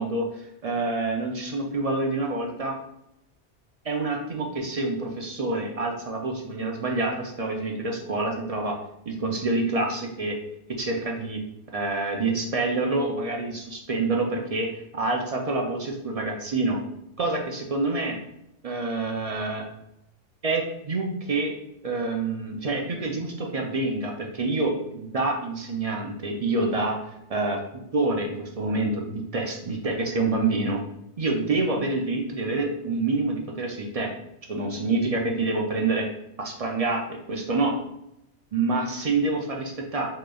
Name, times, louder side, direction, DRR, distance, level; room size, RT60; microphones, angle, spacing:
voice 1, 0.0-2.7 3.8-8.7 9.1-10.4 10.7-11.4 11.7-14.7 15.0-16.8 17.2-18.2 18.6-19.7 20.4-21.5 21.8-27.6 27.9-30.8 31.2-34.1 34.5-36.1 36.4-37.0 37.3-37.8 38.5-40.1, right 3 dB, 50° right, 1 dB, 0.4 m, -27 dB
4.9 x 3.0 x 2.3 m, 0.82 s
omnidirectional pair, 1.2 m